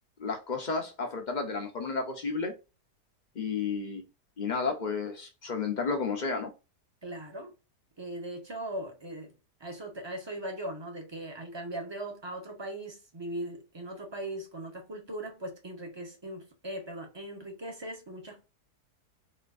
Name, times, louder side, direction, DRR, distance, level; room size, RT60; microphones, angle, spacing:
voice 1, 0.2-2.5 3.3-4.0 4.4-6.5, left 4 dB, 50° left, 0.5 m, -32 dB
voice 2, 7.0-7.5 8.0-9.3 9.6-18.4, right 1 dB, 25° right, 0.6 m, -39 dB
4.2 x 2.5 x 2.4 m
omnidirectional pair, 1.8 m